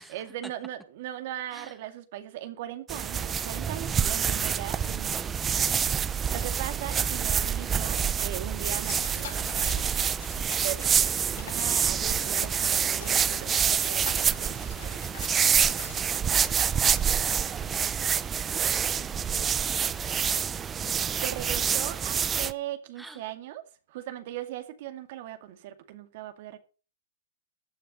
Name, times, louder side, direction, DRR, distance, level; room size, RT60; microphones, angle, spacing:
voice 1, 0.0-5.1 6.3-9.7 10.6-14.8 21.2-23.6 23.9-26.6, right 12 dB, 60° right, 2.2 m, -39 dB
sound 1, 2.9-22.5, right 7 dB, 20° right, 0.7 m, -27 dB
voice 2, 4.3-5.4 15.3-20.8 23.0-23.2, right 1 dB, 5° right, 1.8 m, -49 dB
sound 2, 8.8-16.0, left 7 dB, 80° left, 6.4 m, -44 dB
15.5 x 9.5 x 5.4 m
hypercardioid pair, 130°, 0 cm